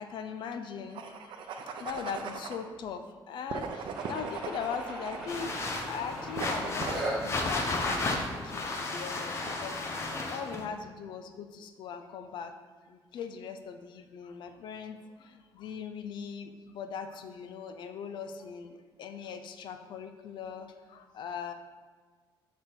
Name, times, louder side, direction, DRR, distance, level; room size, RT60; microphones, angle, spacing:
voice 1, 0.0-12.5 12.8-21.5, left 6 dB, 70° left, 7 dB, 0.5 m, -40 dB
sound 1, 0.9-2.6 3.5-5.6 6.4-7.2, right 5 dB, 75° right, 0.6 m, -39 dB
sound 2, 3.9-10.4, right 1 dB, 5° right, 1.3 m, -41 dB
sound 3, 5.3-10.6, left 2 dB, 35° left, 0.7 m, -33 dB
6.5 x 3.4 x 5.9 m, 1.5 s
cardioid pair, 160°, 8 cm